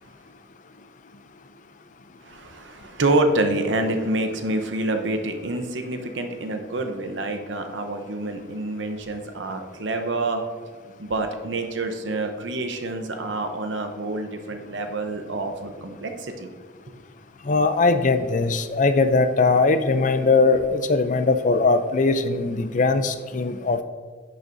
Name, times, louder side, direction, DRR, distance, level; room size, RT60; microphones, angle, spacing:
voice 1, 2.2-10.4 11.0-16.5, right 2 dB, 70° right, 6 dB, 0.8 m, -27 dB
voice 2, 17.5-23.8, left 3 dB, 40° left, 10 dB, 0.4 m, -20 dB
10.0 x 6.3 x 2.6 m, 1.5 s
head